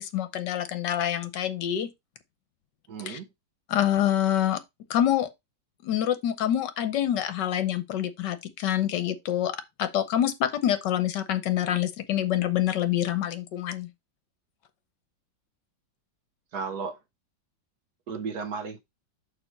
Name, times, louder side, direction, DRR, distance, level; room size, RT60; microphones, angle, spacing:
voice 1, 0.0-1.9 3.1-3.2 3.7-4.6 4.9-5.3 5.8-13.9, left 11 dB, 70° left, 1.4 m, -26 dB
voice 2, 2.9-3.3 16.5-17.0 18.1-18.8, right 5 dB, 60° right, 1.3 m, -34 dB
6.8 x 4.5 x 4.3 m
omnidirectional pair, 2.1 m